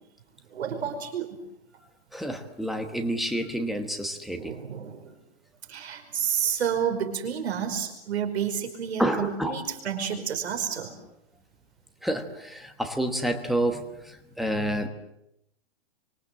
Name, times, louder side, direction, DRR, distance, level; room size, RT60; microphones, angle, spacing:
voice 1, 0.5-1.4 4.3-5.2 5.7-11.0, right 8 dB, 85° right, 5 dB, 5.2 m, -30 dB
voice 2, 2.1-4.5 9.0-9.6 12.0-14.9, right 1 dB, ahead, 5 dB, 1.2 m, -29 dB
29.0 x 25.0 x 7.6 m, 0.80 s
hypercardioid pair, 180°, 32 cm